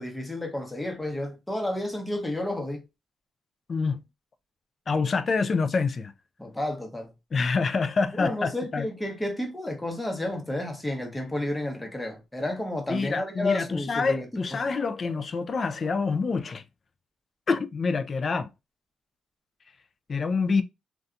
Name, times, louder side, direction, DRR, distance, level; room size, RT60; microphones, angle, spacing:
voice 1, 0.0-2.8 6.4-7.1 8.2-14.3, left 1 dB, 10° left, 0.8 m, -31 dB
voice 2, 3.7-4.0 4.9-6.1 7.3-8.9 12.9-16.6 17.5-18.5 20.1-20.6, left 4 dB, 40° left, 0.3 m, -26 dB
2.7 x 2.2 x 2.4 m
cardioid pair, 90°, 0 cm